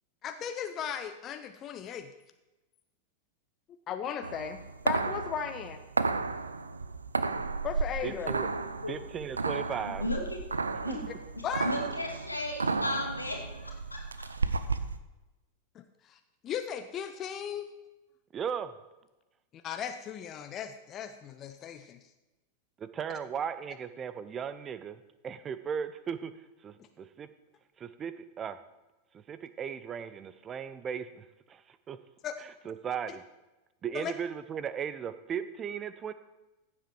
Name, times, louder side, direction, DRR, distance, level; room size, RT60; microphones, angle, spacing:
voice 1, 0.2-2.1 3.9-4.6 4.8-5.8 7.6-8.3 11.4-11.7 15.8-16.2 16.4-17.7 19.6-22.0 32.2-32.3 33.9-34.1, left 8 dB, 30° left, 8 dB, 0.7 m, -36 dB
sound 1, 4.2-15.0, right 4 dB, 75° right, 0.6 m, -33 dB
voice 2, 8.0-8.5 8.9-10.1 10.9-11.1 18.3-18.7 22.8-26.3 26.6-27.3 27.8-28.6 29.1-32.0 32.4-33.2 33.8-36.1, right 7 dB, 25° right, 13 dB, 0.6 m, -37 dB
voice 3, 8.5-8.9 10.0-10.4 10.8-11.0 11.4-14.6, left 1 dB, 85° left, 1 dB, 2.3 m, -36 dB
15.0 x 7.5 x 4.6 m, 1.0 s
figure-of-eight pair, 90°, 0 cm